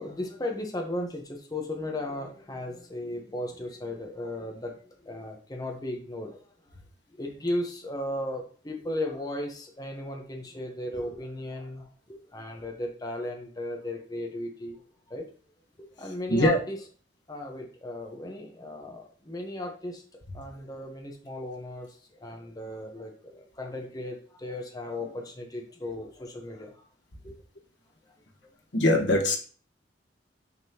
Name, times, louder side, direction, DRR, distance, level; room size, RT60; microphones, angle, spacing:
voice 1, 0.0-6.4 7.1-14.8 15.1-15.2 16.0-16.8 17.3-20.0 20.3-26.8 27.2-27.3, left 1 dB, 20° left, 1 dB, 1.0 m, -36 dB
voice 2, 28.7-29.4, left 1 dB, 80° left, 3 dB, 1.3 m, -21 dB
9.6 x 3.7 x 2.9 m, 0.41 s
head